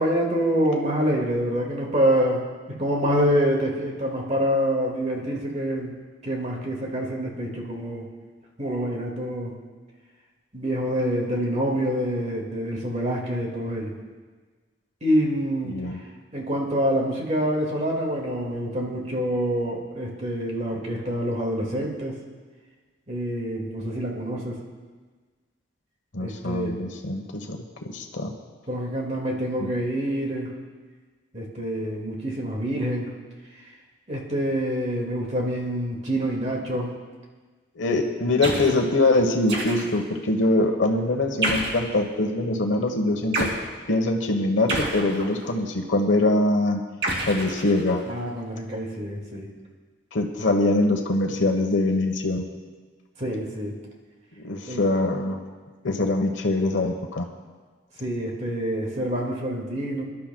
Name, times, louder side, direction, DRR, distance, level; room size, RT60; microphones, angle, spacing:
voice 1, 0.0-2.4 2.8-6.0 6.2-8.1 8.6-9.5 10.5-13.9 15.0-15.8 16.3-22.2 23.1-24.6 26.2-26.8 28.7-30.5 31.3-33.1 34.1-36.9 37.9-38.0 48.0-49.5 53.2-53.7 54.7-54.8 58.0-60.0, equal, 35° right, -1 dB, 2.1 m, -26 dB
voice 2, 15.7-16.0 26.1-27.6 27.9-28.3 37.8-43.5 43.9-46.8 47.3-48.0 50.1-52.4 54.4-55.4 55.8-57.2, left 2 dB, 75° left, 3 dB, 1.2 m, -23 dB
sound 1, 38.4-38.8 39.5-40.1 41.4-41.9 43.3-43.6 44.7-45.6 47.0-48.1, right 1 dB, 65° right, 2.7 m, -29 dB
26.0 x 12.0 x 2.3 m, 1.4 s
head